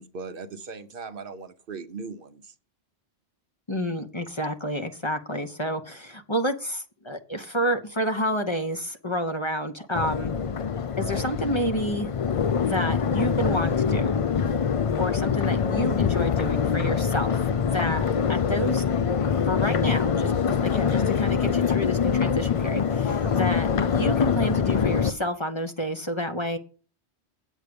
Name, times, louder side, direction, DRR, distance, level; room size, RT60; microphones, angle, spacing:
voice 1, 0.0-2.5 23.1-23.4, right 4 dB, 55° right, 9 dB, 0.8 m, -39 dB
voice 2, 3.7-10.3 11.0-12.1 12.6-14.2 15.0-17.4 17.7-18.8 19.5-26.6, equal, 30° left, 6 dB, 0.9 m, -29 dB
Crowd, 9.9-25.1, left 6 dB, 50° left, 0.4 m, -24 dB
8.2 x 8.2 x 5.1 m, 0.39 s
omnidirectional pair, 1.1 m